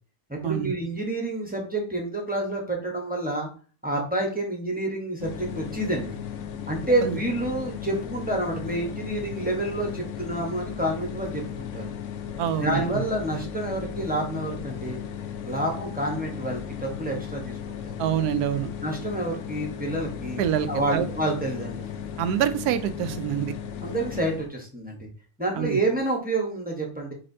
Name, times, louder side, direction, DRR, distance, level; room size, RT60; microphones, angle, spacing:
voice 1, 0.3-3.5 3.8-6.2 6.7-11.8 12.6-15.0 15.4-17.9 18.8-20.4 20.7-21.9 23.8-25.1 25.4-27.1, right 1 dB, 10° right, 0 dB, 0.7 m, -28 dB
sound 1, 5.2-24.5, left 8 dB, 65° left, 0.8 m, -36 dB
voice 2, 12.4-13.0 18.0-18.7 20.4-21.1 22.2-23.5 25.5-25.8, right 10 dB, 85° right, 10 dB, 1.1 m, -26 dB
4.2 x 4.1 x 2.7 m, 0.39 s
omnidirectional pair, 1.6 m